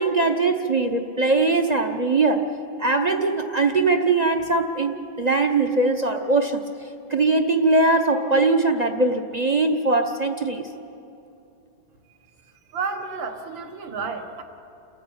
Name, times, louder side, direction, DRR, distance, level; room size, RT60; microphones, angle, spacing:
voice 1, 0.0-2.5 2.8-6.6 7.1-10.7, right 3 dB, 40° right, 6 dB, 0.6 m, -21 dB
voice 2, 12.4-14.4, right 4 dB, 80° right, 6 dB, 2.1 m, -31 dB
29.5 x 13.5 x 8.8 m, 2.8 s
omnidirectional pair, 2.1 m